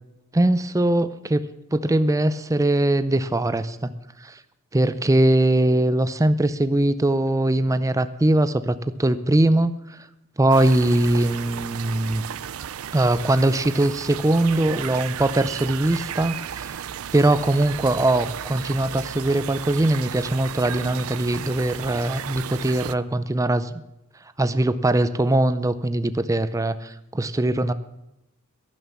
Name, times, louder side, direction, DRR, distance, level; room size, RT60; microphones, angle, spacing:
voice 1, 0.3-1.4 1.7-3.9 4.2-4.4 4.7-10.1 10.4-12.2 12.9-16.9 17.1-23.7 24.4-27.7, right 1 dB, 15° right, 13 dB, 0.5 m, -21 dB
sound 1, 10.5-23.0, right 9 dB, 70° right, 0.5 m, -34 dB
11.5 x 11.0 x 7.2 m, 0.86 s
head